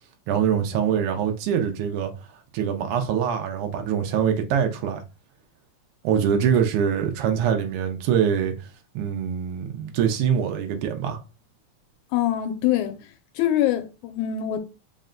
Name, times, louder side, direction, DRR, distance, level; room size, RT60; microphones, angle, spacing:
voice 1, 0.3-2.1 2.5-5.0 6.0-8.5 8.9-11.2, right 8 dB, 90° right, 1.3 m, -24 dB
voice 2, 12.1-14.6, left 12 dB, 90° left, 2.0 m, -24 dB
4.6 x 2.1 x 3.7 m
omnidirectional pair, 3.3 m